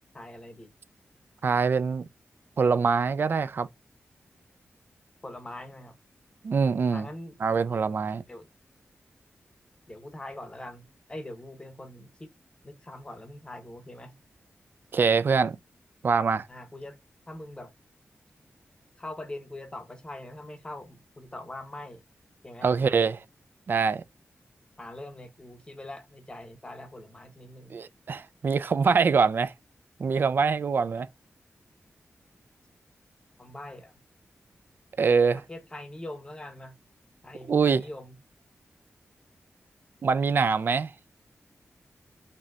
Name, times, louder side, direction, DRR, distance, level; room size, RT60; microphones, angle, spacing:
voice 1, 0.1-0.7 5.2-6.0 6.9-7.4 8.3-8.5 9.9-12.3 12.6-14.2 16.5-17.0 17.3-17.7 19.0-22.0 22.4-22.7 24.8-27.8 33.4-33.9 35.4-36.8 37.2-38.2, left 1 dB, 20° left, 0.9 m, -42 dB
voice 2, 1.4-2.1 2.6-3.7 6.4-7.1 7.4-8.2 14.9-15.6 16.0-16.5 22.6-23.2 23.7-24.0 27.7-29.5 30.0-31.1 35.0-35.4 37.5-37.8 40.0-40.9, right 5 dB, 50° right, 0.4 m, -24 dB
5.3 x 2.8 x 2.3 m
wide cardioid pair, 180°, 5 cm